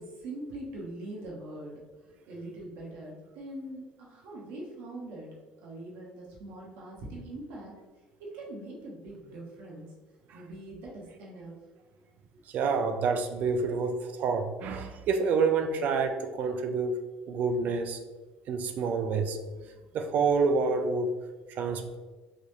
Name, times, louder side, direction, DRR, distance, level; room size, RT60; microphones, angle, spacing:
voice 1, 0.0-1.8 2.2-5.3 5.6-7.7 8.2-9.9 10.3-11.5, right 1 dB, 80° right, -2 dB, 1.1 m, -42 dB
voice 2, 12.5-17.0 17.3-18.0 18.5-19.4 19.9-21.2 21.5-22.0, right 4 dB, 60° right, 7 dB, 0.5 m, -28 dB
4.0 x 2.6 x 3.1 m, 1.3 s
supercardioid pair, 95°, 3 cm